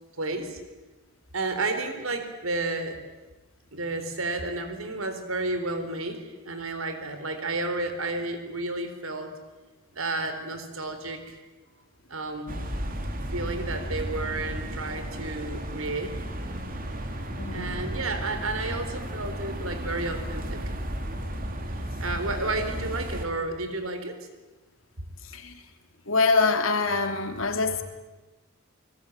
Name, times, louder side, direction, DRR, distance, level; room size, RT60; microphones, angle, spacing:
voice 1, 0.2-0.6 1.3-3.0 3.7-9.3 9.9-11.4 12.1-12.6 13.3-16.1 17.5-20.7 22.0-24.2, right 2 dB, 75° right, 8 dB, 3.9 m, -31 dB
sound 1, 12.5-23.3, equal, 40° right, 3.1 m, -34 dB
voice 2, 17.4-17.7 25.3-25.5 26.1-27.8, left 4 dB, 65° left, 6 dB, 2.9 m, -24 dB
29.5 x 20.5 x 9.0 m, 1.2 s
head